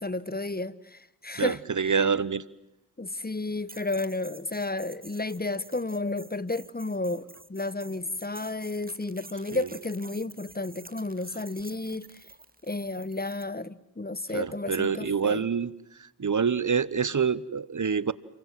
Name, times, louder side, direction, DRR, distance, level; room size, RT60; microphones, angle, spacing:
voice 1, 0.0-1.6 1.8-1.9 3.0-12.2 12.6-15.4, left 2 dB, 25° left, 1.3 m, -32 dB
voice 2, 1.3-2.4 9.5-9.7 14.3-15.7 16.0-18.1, right 6 dB, 50° right, 1.1 m, -26 dB
sound 1, 3.7-13.5, right 2 dB, 20° right, 2.0 m, -50 dB
30.0 x 24.0 x 7.6 m
cardioid pair, 40°, 39 cm